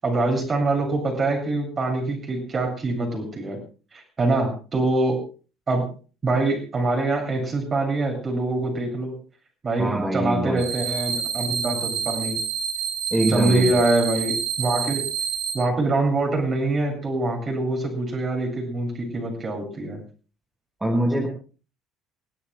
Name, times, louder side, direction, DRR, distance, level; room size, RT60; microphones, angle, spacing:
voice 1, 0.0-3.6 3.9-5.2 5.7-5.9 6.2-9.2 9.6-12.4 13.3-15.0 15.5-20.0, right 2 dB, 35° right, 3 dB, 7.7 m, -24 dB
voice 2, 9.8-10.6 13.1-13.7 20.8-21.3, right 1 dB, 15° right, 1 dB, 5.0 m, -23 dB
sound 1, 10.6-15.5, right 7 dB, 70° right, 4.7 m, -28 dB
29.5 x 17.0 x 2.2 m, 0.36 s
hypercardioid pair, 60°, 0 cm